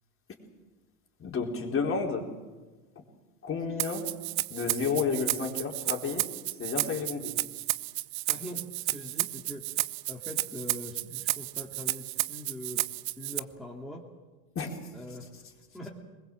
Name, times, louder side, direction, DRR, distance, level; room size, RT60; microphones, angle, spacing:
voice 1, 1.2-2.3 3.4-4.1 4.5-6.3 6.6-7.3 14.5-14.8, left 5 dB, 25° left, 1 dB, 4.3 m, -31 dB
Rattle (instrument), 3.8-13.4, right 19 dB, 40° right, 0.7 m, -32 dB
voice 2, 8.3-12.8 13.2-14.1 14.9-15.2 15.7-15.9, left 1 dB, ahead, -3 dB, 2.6 m, -42 dB
23.5 x 21.0 x 7.7 m, 1.3 s
hypercardioid pair, 110°, 46 cm